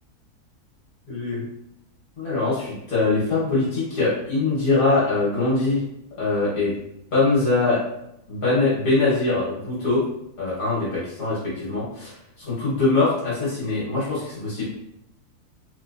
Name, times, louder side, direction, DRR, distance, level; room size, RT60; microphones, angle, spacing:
voice 1, 1.1-1.4 2.2-5.8 6.2-6.7 7.1-7.8 8.3-10.0 10.4-12.1 12.5-14.6, left 3 dB, 65° left, -9 dB, 1.6 m, -22 dB
3.4 x 3.0 x 2.5 m, 0.81 s
omnidirectional pair, 1.7 m